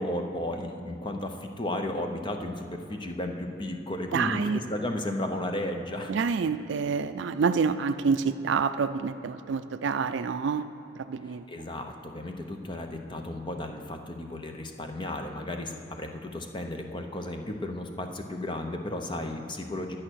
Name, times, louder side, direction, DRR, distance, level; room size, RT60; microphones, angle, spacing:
voice 1, 0.0-6.1 11.2-20.0, left 1 dB, 25° left, 4 dB, 0.8 m, -34 dB
voice 2, 4.1-4.6 6.1-10.7 11.0-11.4, right 5 dB, 60° right, 11 dB, 0.4 m, -27 dB
11.5 x 8.8 x 6.3 m, 3.0 s
head